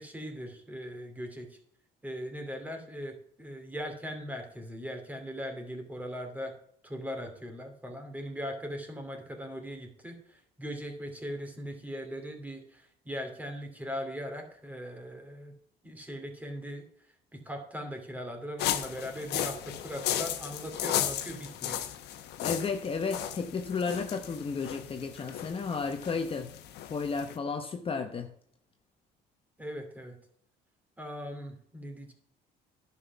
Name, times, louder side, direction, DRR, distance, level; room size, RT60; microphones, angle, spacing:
voice 1, 0.0-1.6 2.0-6.5 6.8-15.5 15.8-16.8 17.3-21.8 29.6-30.2 31.0-32.1, equal, 10° right, 2.7 m, -39 dB
sound 1, 18.6-27.4, left 11 dB, 80° left, 1.2 m, -35 dB
voice 2, 22.4-26.5 26.9-28.3, left 5 dB, 35° left, 1.0 m, -33 dB
11.0 x 6.0 x 5.9 m
cardioid pair, 110°, 17 cm